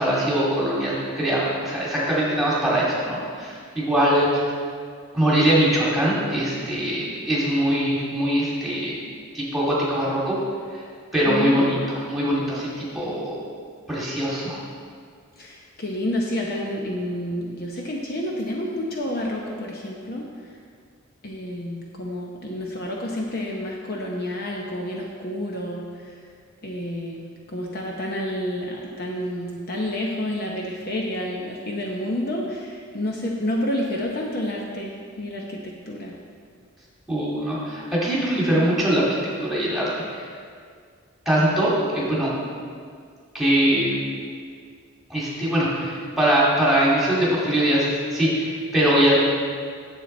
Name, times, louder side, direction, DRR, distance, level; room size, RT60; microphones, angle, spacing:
voice 1, 0.0-4.4 5.1-9.0 9.3-10.4 10.7-10.8 11.1-13.5 13.9-14.6 37.1-39.1 39.4-40.2 41.3-42.3 43.3-44.0 45.1-47.9 48.1-49.2, right 1 dB, ahead, -7 dB, 2.2 m, -22 dB
voice 2, 11.2-11.7 15.4-20.6 21.2-26.2 26.6-36.2, left 1 dB, 45° left, -1 dB, 0.8 m, -29 dB
9.8 x 7.5 x 4.3 m, 2.1 s
head